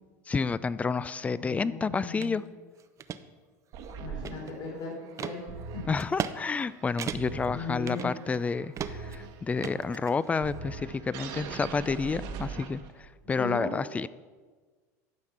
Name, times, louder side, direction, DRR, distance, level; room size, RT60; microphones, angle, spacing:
voice 1, 0.3-2.4 5.9-14.1, left 4 dB, 15° left, 18 dB, 0.3 m, -30 dB
voice 2, 1.2-2.4 4.0-5.4 5.7-5.8 7.5-8.1 13.4-13.7, left 4 dB, 50° left, -3 dB, 3.2 m, -38 dB
sound 1, 2.2-2.3 2.8-3.2 3.7-4.7 5.2-5.4 6.0-6.4 6.6-6.7 7.0-7.5 7.9-8.4 8.8-9.2 9.6-10.4, right 8 dB, 35° right, 0.6 m, -36 dB
sound 2, 3.7-13.2, right 5 dB, 60° right, 1.3 m, -42 dB
12.0 x 4.9 x 5.9 m, 1.4 s
hypercardioid pair, 95°, 9 cm